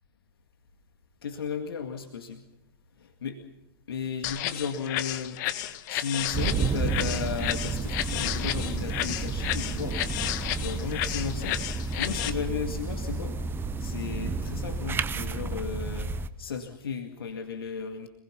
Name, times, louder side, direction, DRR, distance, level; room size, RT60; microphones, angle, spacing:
voice 1, 1.2-2.4 3.0-3.4 3.9-5.4 5.9-10.0 10.6-11.6 12.0-13.4 13.8-18.1, left 6 dB, 70° left, 5 dB, 2.1 m, -35 dB
sound 1, 4.2-12.3, left 13 dB, 50° left, 1.7 m, -32 dB
sound 2, 6.3-16.3, right 4 dB, 15° right, 1.1 m, -31 dB
26.5 x 20.5 x 5.8 m, 0.89 s
figure-of-eight pair, 105°, 13 cm